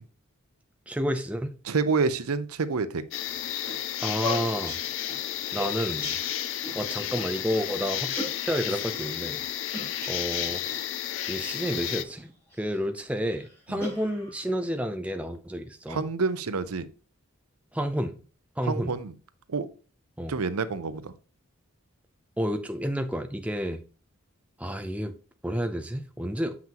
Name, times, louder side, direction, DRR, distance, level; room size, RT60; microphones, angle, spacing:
voice 1, 0.9-1.5 4.0-4.8 5.5-6.2 6.7-9.4 10.1-10.6 11.3-12.3 12.6-16.0 17.7-18.2 18.6-18.9 20.2-20.3 22.4-23.8 24.6-25.2 25.4-26.6, equal, 5° right, 0.5 m, -30 dB
voice 2, 1.6-3.0 13.7-13.8 15.9-16.9 18.6-19.1 19.5-19.7 20.3-21.1, right 4 dB, 85° right, 0.6 m, -28 dB
sound 1, 3.1-12.0, left 11 dB, 60° left, 0.4 m, -32 dB
sound 2, 3.2-6.8 7.1-7.2 7.5-7.7 8.2-9.1 9.7-10.9 11.6-12.8 13.3-14.5, left 1 dB, 10° left, 3.5 m, -38 dB
7.4 x 5.8 x 2.9 m
head